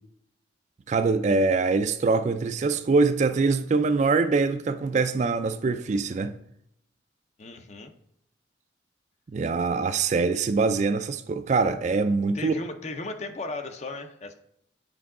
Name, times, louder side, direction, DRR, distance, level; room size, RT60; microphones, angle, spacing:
voice 1, 0.9-6.3 9.3-12.5, right 4 dB, 35° right, 0.3 m, -23 dB
voice 2, 7.4-7.9 12.3-14.3, left 2 dB, 35° left, 0.5 m, -36 dB
8.0 x 4.6 x 3.7 m
head